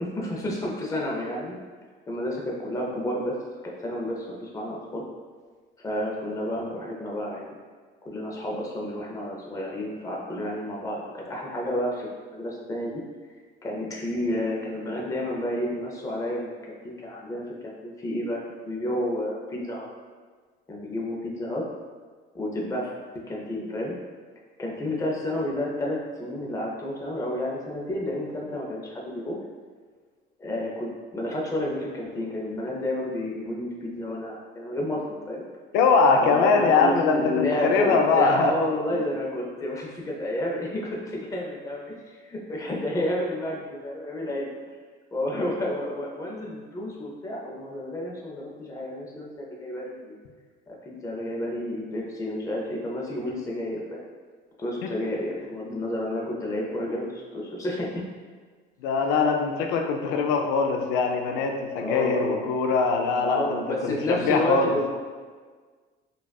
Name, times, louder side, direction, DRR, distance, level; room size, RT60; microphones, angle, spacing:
voice 1, 0.0-1.6 2.1-3.4 3.8-5.0 5.8-7.5 8.0-13.0 13.6-16.5 16.8-19.9 20.7-21.7 22.3-22.9 23.3-24.0 24.6-29.4 30.4-35.4 36.1-44.5 45.1-50.1 50.7-54.0 54.6-58.1 61.8-62.5 63.2-64.9, left 1 dB, 15° left, -3 dB, 0.6 m, -30 dB
voice 2, 35.7-38.5 54.8-54.9 58.8-64.7, left 4 dB, 85° left, 3 dB, 0.4 m, -22 dB
4.8 x 2.4 x 2.3 m, 1.5 s
cardioid pair, 150°, 19 cm